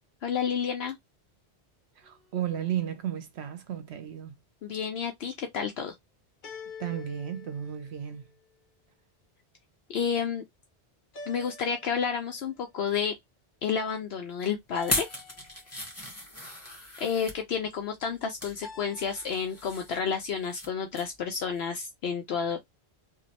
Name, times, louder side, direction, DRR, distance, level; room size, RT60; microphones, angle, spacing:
voice 1, 0.2-1.0 4.6-5.9 9.9-10.4 11.3-13.2 13.6-15.1 17.0-22.8, left 6 dB, 70° left, 0.8 m, -30 dB
sound 1, 2.0-2.7 6.4-8.4 11.1-12.5 14.7-15.9 18.6-19.6, left 5 dB, 50° left, 1.0 m, -47 dB
voice 2, 2.0-4.4 6.8-8.3, right 10 dB, 75° right, 0.9 m, -34 dB
sound 2, 14.8-17.4 18.0-18.6 19.0-20.7 20.9-21.2 21.6-21.7, equal, 15° left, 1.2 m, -36 dB
3.0 x 2.5 x 2.7 m
omnidirectional pair, 1.1 m